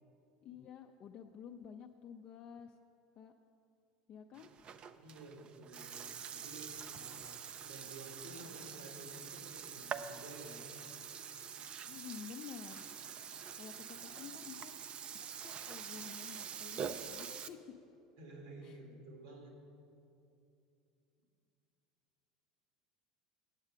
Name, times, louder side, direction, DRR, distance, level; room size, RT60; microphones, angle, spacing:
voice 1, 0.4-2.8 3.2-3.3 4.1-4.5 11.8-12.8 13.6-14.8 15.1-17.6 18.6-18.8, left 8 dB, 45° left, 3 dB, 0.4 m, -51 dB
Burping eructation, 4.3-17.5, right 7 dB, 40° right, 0.4 m, -46 dB
voice 2, 5.0-7.4 7.7-10.7 18.2-19.5, right 2 dB, 80° right, 1 dB, 1.9 m, -52 dB
8.2 x 7.2 x 6.3 m, 2.7 s
hypercardioid pair, 80°, 3 cm